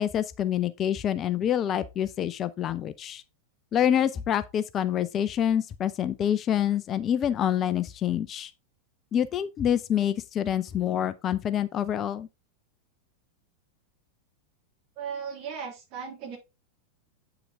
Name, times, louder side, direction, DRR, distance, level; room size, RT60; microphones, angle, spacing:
voice 1, 0.0-3.2 3.7-8.5 9.1-12.3, left 10 dB, 30° left, 0.5 m, -26 dB
voice 2, 15.0-16.4, right 7 dB, 40° right, 3.1 m, -36 dB
8.4 x 5.8 x 3.7 m
figure-of-eight pair, 90°, 0 cm